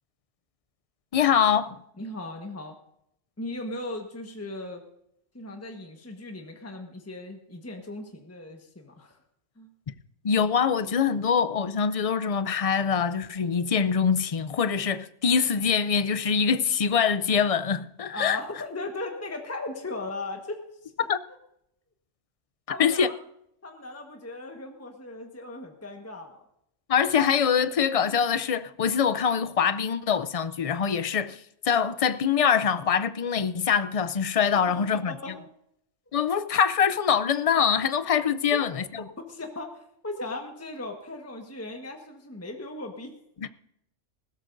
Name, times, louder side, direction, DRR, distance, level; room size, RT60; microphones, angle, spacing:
voice 1, 1.1-1.8 10.2-18.4 21.1-21.2 22.8-23.1 26.9-35.1 36.1-38.8 43.4-43.5, left 7 dB, 50° left, 0.4 m, -24 dB
voice 2, 2.0-2.7 3.4-4.8 5.3-9.2 9.6-9.7 18.1-20.9 22.7-23.2 23.6-26.4 35.1-35.4 38.5-38.6 39.2-43.1, left 2 dB, 10° left, 1.3 m, -37 dB
20.0 x 16.5 x 2.6 m
omnidirectional pair, 1.3 m